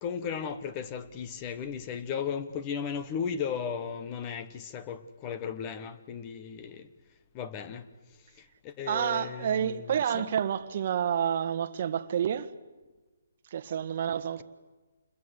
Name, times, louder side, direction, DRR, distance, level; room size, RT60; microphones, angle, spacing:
voice 1, 0.0-6.9 7.3-7.9 8.4-10.3, left 7 dB, 25° left, 1.5 m, -36 dB
voice 2, 8.9-12.5 13.5-14.4, right 9 dB, 45° right, 1.4 m, -29 dB
28.5 x 21.5 x 8.2 m
hypercardioid pair, 155°, 0 cm